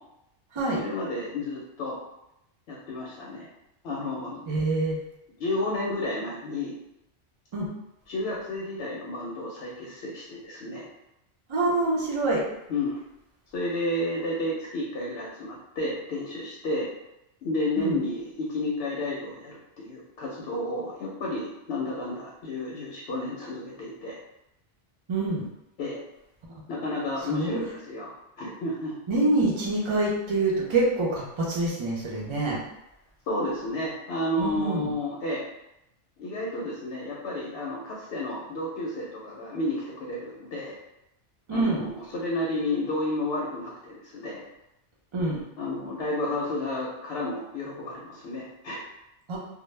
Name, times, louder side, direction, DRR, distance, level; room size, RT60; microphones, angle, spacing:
voice 1, 0.7-2.0 2.7-3.5 3.8-4.4 5.4-6.7 8.1-10.9 12.7-13.0 13.5-16.9 17.4-24.2 25.8-26.0 26.7-28.9 33.3-35.4 36.2-40.8 41.5-44.4 45.6-48.8, left 1 dB, 70° left, -4 dB, 0.8 m, -31 dB
voice 2, 4.5-5.0 7.5-7.7 11.5-12.5 17.8-18.0 25.1-25.4 27.3-27.6 29.1-32.6 34.4-34.9 41.5-41.9 45.1-45.4 49.3-49.4, right 2 dB, 45° right, -3 dB, 0.4 m, -26 dB
2.1 x 2.0 x 3.1 m, 0.87 s
omnidirectional pair, 1.2 m